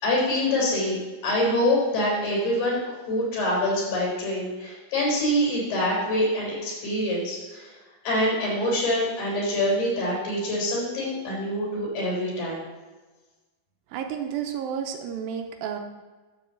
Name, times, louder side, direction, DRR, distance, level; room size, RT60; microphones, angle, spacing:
voice 1, 0.0-2.8 3.1-7.7 8.0-12.6, left 1 dB, 80° left, -4 dB, 6.0 m, -25 dB
voice 2, 13.9-15.8, right 8 dB, 80° right, 5 dB, 2.4 m, -31 dB
12.5 x 4.7 x 7.1 m, 1.3 s
omnidirectional pair, 4.4 m